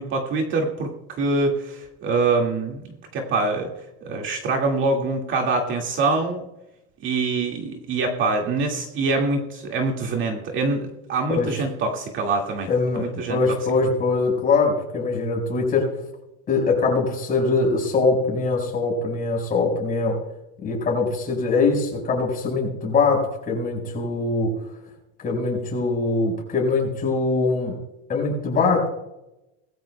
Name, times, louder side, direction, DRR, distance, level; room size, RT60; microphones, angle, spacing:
voice 1, 0.0-2.8 3.1-3.7 4.0-6.5 7.0-12.7 12.9-13.4, right 3 dB, 35° right, 2 dB, 2.0 m, -24 dB
voice 2, 12.7-15.9 16.5-20.2 20.6-24.6 25.2-27.8 28.1-28.9, left 3 dB, 25° left, 1 dB, 5.0 m, -22 dB
21.0 x 13.5 x 2.2 m, 0.91 s
supercardioid pair, 155°, 34 cm